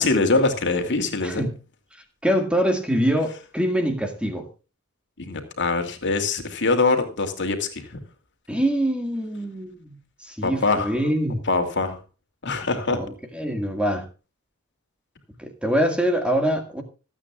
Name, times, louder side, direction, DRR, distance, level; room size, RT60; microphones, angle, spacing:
voice 1, 0.0-1.5 5.2-8.0 10.4-10.9 11.5-12.0 12.4-13.0, left 3 dB, 55° left, 5 dB, 2.6 m, -23 dB
voice 2, 1.2-1.6 2.2-4.5 8.5-10.0 10.2-11.4 12.9-13.1 13.3-14.1 15.4-16.8, equal, 5° right, 5 dB, 1.9 m, -24 dB
26.5 x 9.0 x 2.4 m, 0.32 s
head